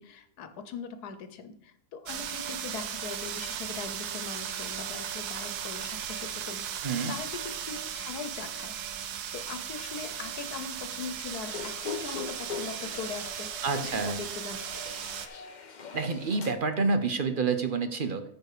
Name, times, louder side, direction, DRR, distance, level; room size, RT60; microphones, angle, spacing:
voice 1, 0.0-6.6 7.1-14.6, left 5 dB, 85° left, 9 dB, 1.5 m, -41 dB
sound 1, 2.1-15.3, right 9 dB, 85° right, 1.3 m, -37 dB
voice 2, 6.8-7.2 13.6-14.2 15.9-18.2, right 4 dB, 45° right, 8 dB, 0.7 m, -28 dB
sound 2, 11.4-16.5, left 6 dB, 40° left, 0.7 m, -42 dB
13.5 x 4.7 x 5.0 m, 0.69 s
omnidirectional pair, 1.6 m